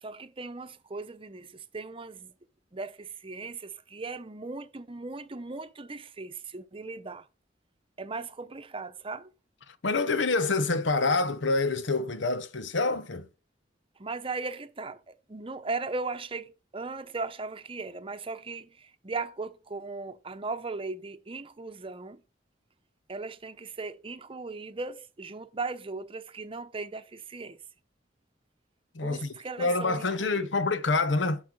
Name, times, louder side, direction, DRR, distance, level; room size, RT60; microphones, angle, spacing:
voice 1, 0.0-2.3 2.7-7.3 8.0-9.3 14.0-22.2 23.1-27.6 29.0-30.5, right 3 dB, 30° right, 0.8 m, -38 dB
voice 2, 9.8-13.3 28.9-31.4, left 3 dB, 85° left, 1.0 m, -27 dB
8.6 x 6.3 x 5.2 m
head